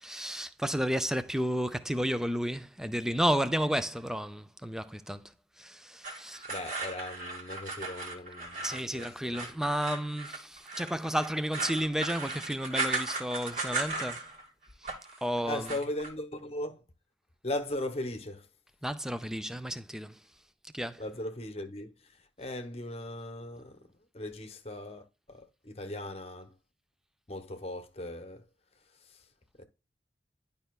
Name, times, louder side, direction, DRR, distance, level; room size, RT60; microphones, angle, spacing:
voice 1, 0.0-5.3 5.6-6.4 8.6-14.2 14.8-14.9 15.2-15.7 18.8-20.2 20.7-21.0, equal, 5° right, 0.5 m, -32 dB
sound 1, 6.0-14.4 14.7-15.2 15.5-16.1, right 3 dB, 45° right, 2.3 m, -37 dB
voice 2, 6.5-9.5 15.4-16.8 17.4-18.5 21.0-23.8 24.1-26.5 27.3-28.4 29.1-29.2 29.6-29.7, left 1 dB, 35° left, 1.0 m, -38 dB
11.5 x 5.5 x 2.3 m
head